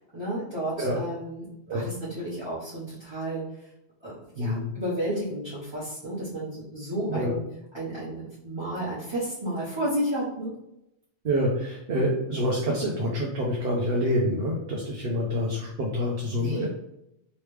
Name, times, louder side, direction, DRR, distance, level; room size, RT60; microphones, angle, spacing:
voice 1, 0.0-3.7 4.0-7.4 7.7-10.5 16.3-16.7, right 1 dB, 25° right, -10 dB, 1.0 m, -32 dB
voice 2, 4.4-4.7 7.1-7.3 11.2-16.7, equal, 60° right, -2 dB, 0.8 m, -27 dB
3.2 x 3.1 x 3.2 m, 0.84 s
omnidirectional pair, 1.2 m